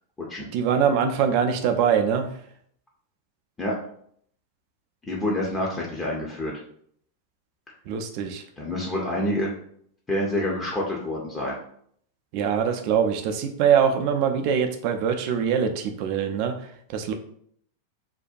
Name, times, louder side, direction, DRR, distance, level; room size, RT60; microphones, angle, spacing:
voice 1, 0.5-2.3 7.9-8.4 12.3-17.1, right 7 dB, 45° right, 6 dB, 0.3 m, -23 dB
voice 2, 5.1-6.5 8.6-9.5 10.1-11.6, left 1 dB, 15° left, -3 dB, 0.5 m, -27 dB
2.6 x 2.1 x 2.4 m, 0.65 s
figure-of-eight pair, 90°, 0 cm